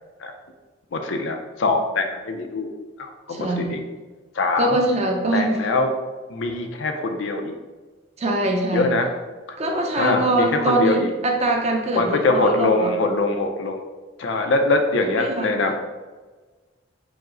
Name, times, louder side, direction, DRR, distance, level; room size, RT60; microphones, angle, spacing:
voice 1, 0.9-2.7 3.0-3.8 4.3-4.8 5.3-5.9 6.3-7.6 8.7-9.1 10.0-11.1 11.9-13.8 14.2-15.7, left 2 dB, 70° left, 4 dB, 0.5 m, -23 dB
voice 2, 3.3-3.8 4.6-5.5 8.2-8.9 9.6-12.9 15.1-15.6, right 2 dB, 35° right, 1 dB, 0.6 m, -23 dB
4.9 x 2.0 x 3.8 m, 1.3 s
head